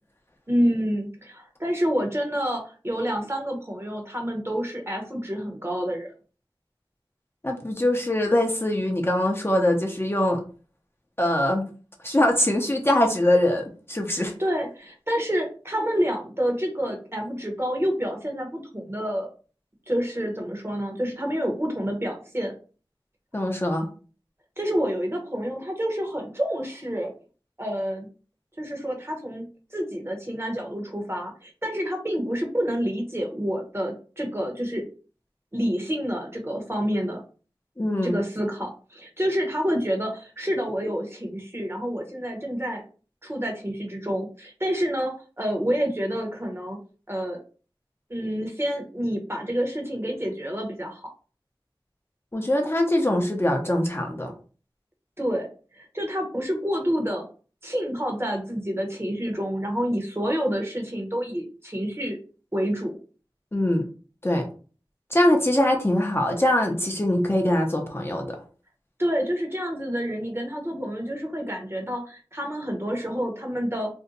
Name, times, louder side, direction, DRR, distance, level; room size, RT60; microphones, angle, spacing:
voice 1, 0.5-6.1 14.4-19.3 19.9-22.5 24.6-27.1 27.6-28.1 28.6-29.4 29.7-34.8 35.5-37.2 38.0-42.8 43.2-46.8 47.1-47.4 48.1-51.1 55.2-55.5 55.7-57.2 57.6-62.2 62.5-63.0 69.0-73.9, equal, 30° right, 1 dB, 0.8 m, -28 dB
voice 2, 7.4-10.4 11.2-11.6 12.0-14.3 23.3-23.9 37.8-38.2 52.3-54.3 63.5-63.9 64.2-64.5 65.1-68.4, left 1 dB, 25° left, 1 dB, 0.5 m, -23 dB
2.6 x 2.1 x 3.8 m, 0.38 s
wide cardioid pair, 45°, 9 cm